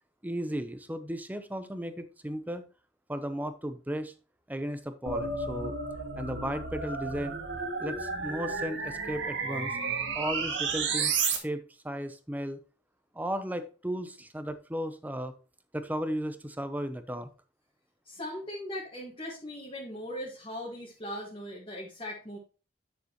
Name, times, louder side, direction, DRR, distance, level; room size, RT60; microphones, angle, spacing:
voice 1, 0.2-2.6 3.1-4.1 4.5-5.7 6.2-7.4 7.8-9.8 10.1-12.6 13.1-15.3 15.7-17.3, equal, 10° right, 10 dB, 0.7 m, -35 dB
sound 1, 5.1-11.4, right 4 dB, 85° right, 1.9 m, -32 dB
voice 2, 18.0-22.4, left 1 dB, 30° left, -4 dB, 1.9 m, -39 dB
9.9 x 6.6 x 3.1 m, 0.35 s
head